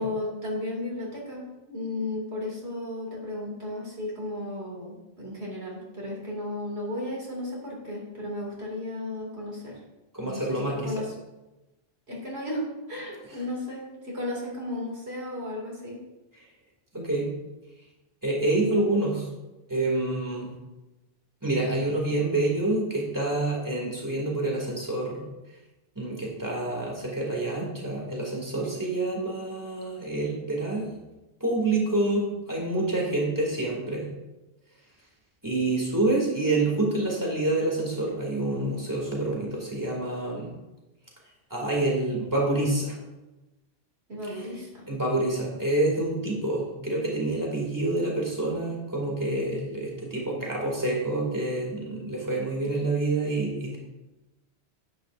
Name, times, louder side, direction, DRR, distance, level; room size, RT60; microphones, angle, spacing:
voice 1, 0.0-9.8 10.2-11.1 12.1-16.0 44.1-44.9, left 1 dB, 80° right, -4 dB, 2.9 m, -34 dB
voice 2, 10.1-10.9 16.9-17.3 18.2-19.3 19.7-20.5 21.4-25.2 26.0-31.0 31.4-34.1 35.4-40.5 41.5-43.0 44.3-44.4 44.9-53.8, right 2 dB, 20° right, -2 dB, 2.5 m, -27 dB
10.5 x 9.3 x 2.6 m, 1.0 s
omnidirectional pair, 1.1 m